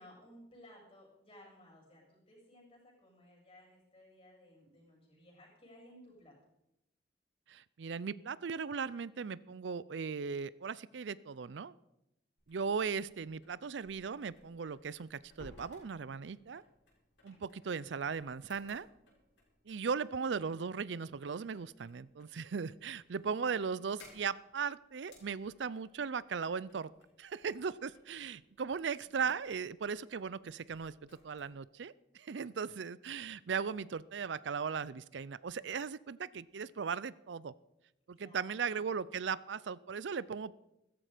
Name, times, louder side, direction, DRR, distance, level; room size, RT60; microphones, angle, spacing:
voice 1, 0.0-6.3 17.3-17.8 29.0-29.2 38.1-39.4, left 1 dB, 35° left, -2 dB, 7.6 m, -59 dB
voice 2, 7.5-11.7 12.5-16.6 17.2-18.9 19.7-26.9 27.2-37.5 38.1-40.5, right 6 dB, 80° right, 19 dB, 0.5 m, -38 dB
sound 1, 12.4-31.5, left 2 dB, 80° left, 6.5 m, -63 dB
15.5 x 13.5 x 5.1 m, 0.85 s
head